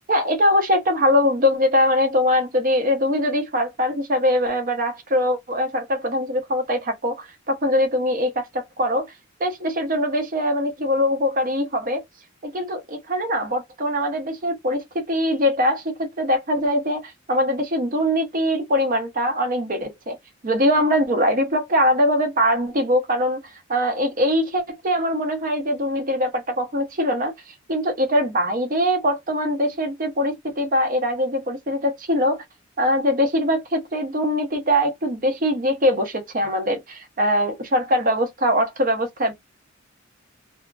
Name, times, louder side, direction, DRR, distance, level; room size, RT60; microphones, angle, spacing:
voice 1, 0.1-9.1 9.4-12.0 12.4-20.2 20.4-23.4 23.7-32.4 32.8-39.3, equal, 40° right, 0.8 m, -22 dB
2.8 x 2.3 x 2.4 m
head